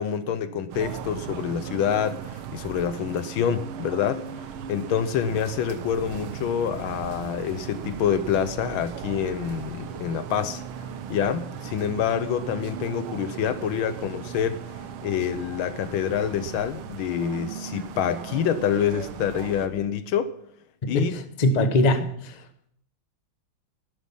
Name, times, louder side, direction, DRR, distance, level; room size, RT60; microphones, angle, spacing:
voice 1, 0.0-4.2 4.7-10.6 11.1-14.6 15.0-20.3 20.9-21.2 21.9-22.1, left 8 dB, 75° left, 1.6 m, -27 dB
sound 1, 0.7-19.7, right 8 dB, 80° right, 1.7 m, -37 dB
voice 2, 20.8-22.4, left 1 dB, 35° left, 0.7 m, -23 dB
12.5 x 11.5 x 5.5 m
omnidirectional pair, 2.3 m